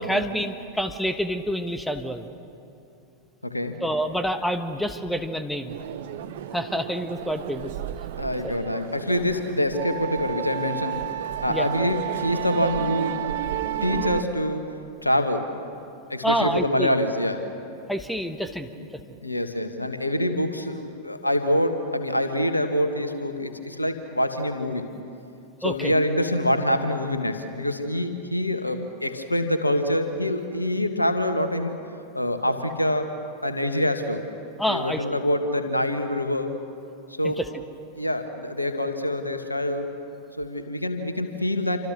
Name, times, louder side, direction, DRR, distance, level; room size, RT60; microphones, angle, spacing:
voice 1, 0.0-2.3 3.8-5.7 6.5-7.7 8.4-8.5 11.5-11.7 16.2-16.9 17.9-18.7 25.6-25.9 34.6-35.0 37.2-37.5, equal, 5° left, 9 dB, 1.4 m, -27 dB
voice 2, 3.4-3.8 8.2-11.0 11.4-13.2 13.8-14.7 15.0-15.5 16.1-17.5 18.8-18.9 19.2-24.9 25.6-31.8 32.1-33.1 33.4-34.2 34.7-36.6 37.2-37.4 38.0-39.9 40.4-41.9, left 1 dB, 85° left, 8 dB, 1.8 m, -25 dB
sound 1, 5.7-14.2, right 12 dB, 55° right, 1.2 m, -32 dB
27.5 x 26.0 x 6.4 m, 2.7 s
figure-of-eight pair, 90°, 0 cm